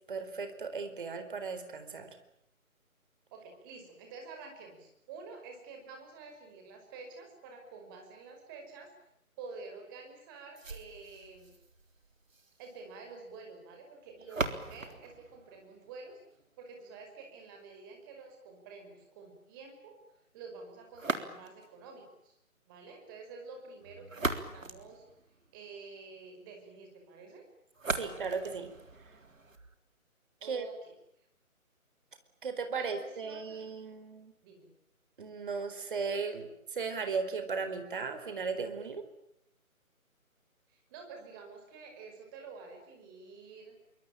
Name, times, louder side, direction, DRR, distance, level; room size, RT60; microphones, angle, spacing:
voice 1, 0.1-2.1 27.9-28.7 30.4-30.7 32.4-34.3 35.2-39.1, right 5 dB, 35° right, 9 dB, 4.4 m, -36 dB
voice 2, 3.3-8.9 9.4-11.5 12.6-16.2 16.6-20.0 20.3-22.4 22.7-25.0 25.5-27.5 30.4-30.9 32.8-33.7 34.4-34.7 40.7-43.7, right 4 dB, 15° right, 3 dB, 5.5 m, -49 dB
sound 1, 10.6-16.5 20.9-21.8 23.8-25.7 27.7-29.7, right 3 dB, 60° right, 3.8 m, -40 dB
26.5 x 24.5 x 8.9 m, 0.77 s
figure-of-eight pair, 155°, 43 cm